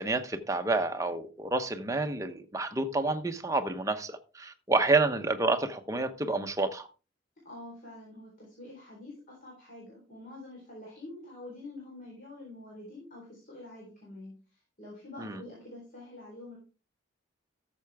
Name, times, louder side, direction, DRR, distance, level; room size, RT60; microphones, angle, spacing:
voice 1, 0.0-6.9 15.2-15.4, right 3 dB, 15° right, 0.9 m, -29 dB
voice 2, 7.4-16.6, left 2 dB, 40° left, 4.0 m, -47 dB
13.5 x 6.8 x 3.5 m
head